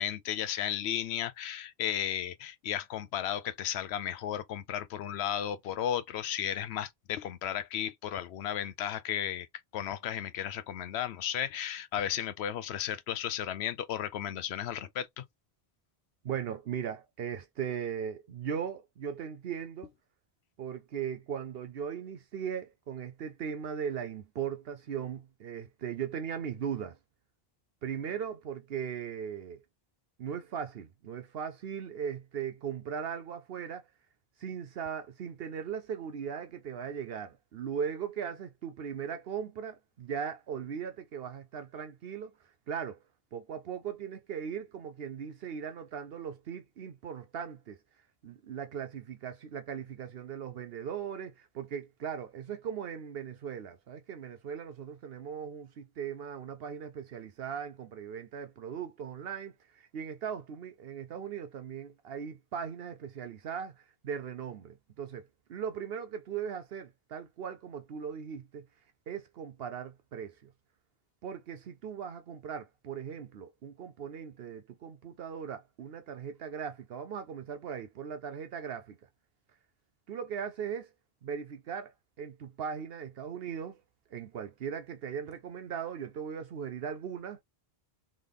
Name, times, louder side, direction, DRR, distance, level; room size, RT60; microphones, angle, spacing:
voice 1, 0.0-9.5 9.7-15.2, left 10 dB, 90° left, 0.9 m, -34 dB
voice 2, 16.2-19.9 20.6-27.0 27.8-29.6 30.2-33.9 34.4-43.0 43.3-47.8 48.2-68.6 69.1-70.5 71.2-79.0 80.1-80.9 81.2-83.8 84.1-87.4, right 7 dB, 70° right, 0.8 m, -38 dB
3.8 x 3.6 x 3.4 m
omnidirectional pair, 1.0 m